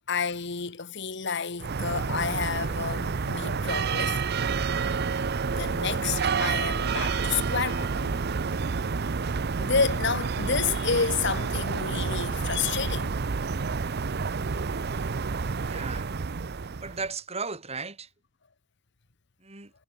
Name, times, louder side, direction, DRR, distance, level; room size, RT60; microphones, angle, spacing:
voice 1, 0.1-4.2 5.5-8.4 9.6-13.1 14.7-14.8, left 5 dB, 60° left, 1.4 m, -30 dB
sound 1, 1.6-17.1, right 5 dB, 50° right, 0.6 m, -29 dB
voice 2, 15.7-16.1 16.8-18.1 19.4-19.7, right 4 dB, 30° right, 4.0 m, -36 dB
head